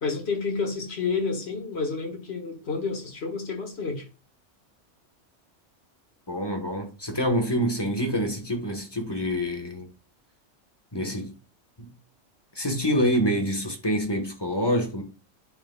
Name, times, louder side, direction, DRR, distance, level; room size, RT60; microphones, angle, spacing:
voice 1, 0.0-4.1, left 4 dB, 55° left, 1.7 m, -30 dB
voice 2, 6.3-9.9 10.9-11.3 11.8-11.9 12.5-15.0, equal, 20° left, 1.1 m, -26 dB
9.7 x 4.5 x 2.2 m
omnidirectional pair, 1.3 m